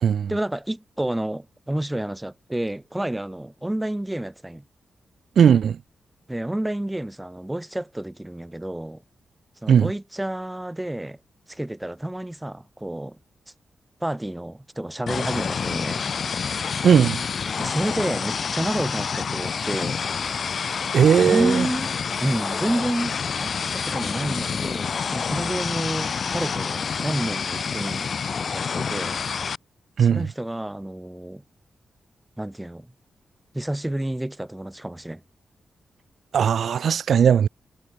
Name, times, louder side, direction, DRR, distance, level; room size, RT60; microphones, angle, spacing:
voice 1, 0.3-4.6 6.3-9.0 9.6-11.2 11.5-13.2 14.0-16.1 17.6-20.0 21.2-21.9 22.2-23.2 23.4-28.1 28.5-29.2 30.0-31.4 32.4-32.9 33.5-35.2, right 1 dB, 10° right, 4.8 m, -29 dB
voice 2, 5.4-5.8 9.7-9.9 16.8-17.2 20.9-21.7 30.0-30.2 36.3-37.5, right 8 dB, 75° right, 1.7 m, -17 dB
sound 1, 15.1-29.6, left 6 dB, 60° left, 4.2 m, -28 dB
cardioid pair, 60°, 0 cm